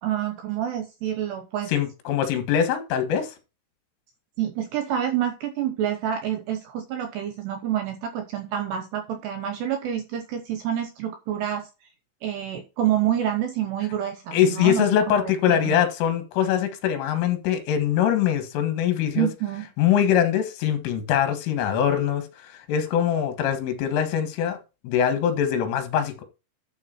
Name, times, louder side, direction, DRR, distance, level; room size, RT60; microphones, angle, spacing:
voice 1, 0.0-1.7 4.4-11.7 12.2-15.8 19.2-19.7, right 10 dB, 75° right, 2.6 m, -28 dB
voice 2, 1.7-3.4 14.3-19.3 19.8-24.6 24.8-26.2, left 9 dB, 75° left, 4.0 m, -23 dB
12.0 x 5.0 x 4.3 m
omnidirectional pair, 5.9 m